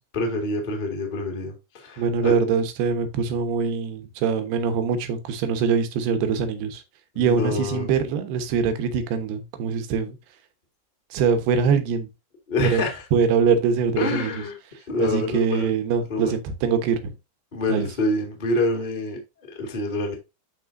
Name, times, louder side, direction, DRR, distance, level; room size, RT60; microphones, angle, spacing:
voice 1, 0.1-2.3 7.1-7.9 12.5-13.0 14.0-14.6 14.9-15.7 16.1-16.3 17.5-19.2 19.5-20.1, left 2 dB, 20° left, 1.5 m, -26 dB
voice 2, 2.0-6.8 7.2-10.2 11.1-12.1 12.6-12.8 13.1-14.3 15.0-17.1 17.7-17.9, right 6 dB, 80° right, 3.2 m, -23 dB
12.5 x 4.4 x 2.7 m
omnidirectional pair, 4.6 m